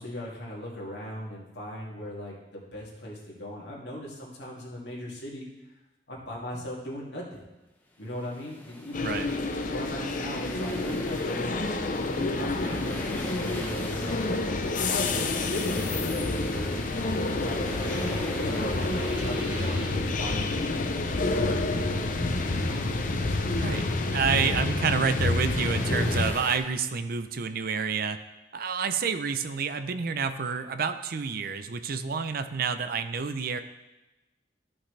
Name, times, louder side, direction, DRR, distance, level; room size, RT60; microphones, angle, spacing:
voice 1, 0.0-5.5 6.1-7.5 8.0-9.1 9.7-11.6 12.0-16.8 17.3-17.6 18.0-20.7 21.1-22.8, equal, 75° left, -4 dB, 2.3 m, -38 dB
sound 1, 8.0-26.6, left 1 dB, 10° left, 1.0 m, -44 dB
sound 2, 8.9-26.3, left 2 dB, 50° left, 0.7 m, -28 dB
voice 2, 9.0-9.3 23.6-23.9 24.1-28.2 28.5-33.6, right 5 dB, 55° right, 10 dB, 0.5 m, -29 dB
sound 3, 11.3-20.9, equal, 10° right, 2.0 m, -45 dB
13.5 x 6.0 x 3.3 m, 1.0 s
head